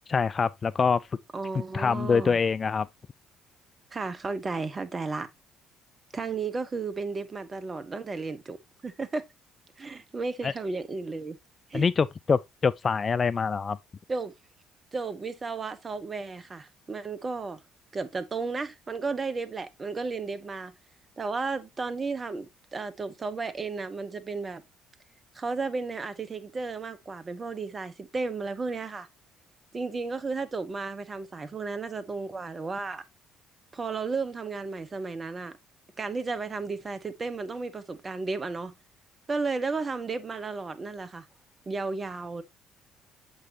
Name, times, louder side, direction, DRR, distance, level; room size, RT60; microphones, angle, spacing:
voice 1, 0.1-1.0 1.7-2.9 10.4-10.5 11.7-13.8, left 5 dB, 35° left, 0.3 m, -25 dB
voice 2, 1.3-2.4 3.9-5.3 6.1-8.6 8.8-9.2 9.8-11.4 11.7-11.9 14.1-14.3 14.9-17.6 17.9-20.7 21.2-24.6 25.3-29.1 29.7-33.0 33.7-35.5 36.0-38.7 39.3-41.3 41.7-42.4, right 4 dB, 30° right, 1.1 m, -33 dB
7.4 x 5.6 x 2.8 m
figure-of-eight pair, 50°, 0 cm